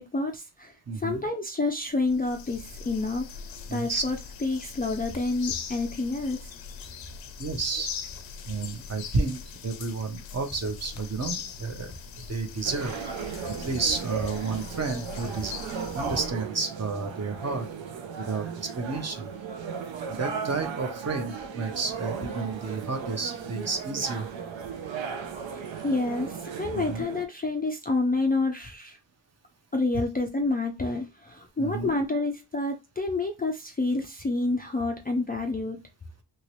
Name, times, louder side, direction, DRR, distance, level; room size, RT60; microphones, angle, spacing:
voice 1, 0.0-3.3 3.7-6.4 25.5-29.0 29.7-35.8, left 3 dB, 20° left, 0.3 m, -28 dB
voice 2, 0.9-1.2 3.7-4.1 7.4-7.9 8.5-13.1 13.6-15.5 15.9-17.7 18.2-19.3 20.1-24.3 26.7-27.1 31.6-31.9, right 4 dB, 35° right, 0.7 m, -31 dB
sound 1, 1.7-1.8 2.0-16.3, left 6 dB, 80° left, 0.6 m, -41 dB
sound 2, 12.6-27.2, right 6 dB, 80° right, 0.6 m, -36 dB
2.9 x 2.8 x 3.0 m
wide cardioid pair, 125°, 45 cm